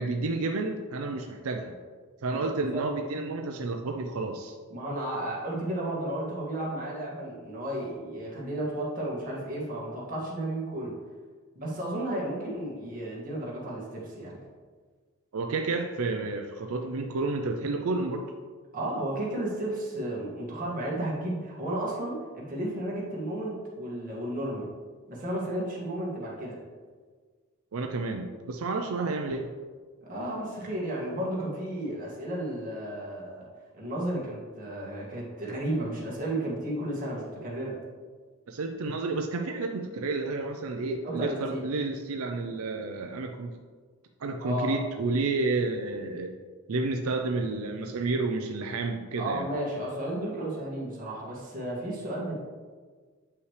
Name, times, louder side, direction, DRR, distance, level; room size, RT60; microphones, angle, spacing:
voice 1, 0.0-1.8 2.2-4.6 15.3-18.3 27.7-29.5 38.5-43.5 44.2-46.4 46.7-49.5, right 3 dB, 90° right, 4 dB, 0.5 m, -30 dB
voice 2, 2.3-2.9 4.7-11.0 11.6-14.4 18.7-24.7 25.1-26.6 30.0-33.5 33.7-37.8 41.0-41.6 44.4-44.7 49.2-52.3, right 1 dB, 40° right, -5 dB, 1.9 m, -33 dB
8.1 x 5.6 x 3.3 m, 1.5 s
head